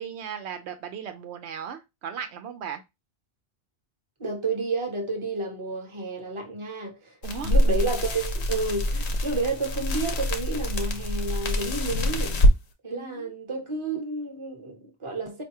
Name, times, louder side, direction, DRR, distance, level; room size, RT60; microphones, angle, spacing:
voice 1, 0.0-2.8 7.2-7.5 12.9-13.3, right 7 dB, 85° right, 0.9 m, -37 dB
voice 2, 4.2-7.2 7.4-12.4 12.8-15.4, right 3 dB, 30° right, 0.9 m, -31 dB
sound 1, 7.2-12.6, equal, 75° left, 1.0 m, -24 dB
4.6 x 2.6 x 2.8 m
omnidirectional pair, 1.1 m